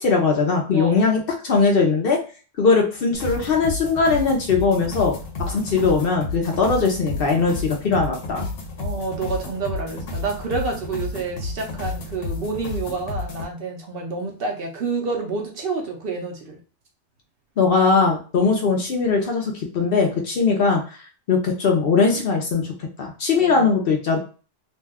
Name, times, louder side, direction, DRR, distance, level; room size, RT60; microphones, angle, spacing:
voice 1, 0.0-2.2 2.6-5.2 5.5-8.5 17.6-20.8 21.3-22.7 23.0-24.2, left 4 dB, 60° left, 1 dB, 0.7 m, -20 dB
voice 2, 0.7-1.1 8.8-16.6 18.4-18.5 23.4-23.7, right 4 dB, 60° right, 2 dB, 0.7 m, -29 dB
sound 1, 3.1-13.4, left 3 dB, 80° left, 1.0 m, -31 dB
2.6 x 2.2 x 3.4 m, 0.37 s
omnidirectional pair, 1.3 m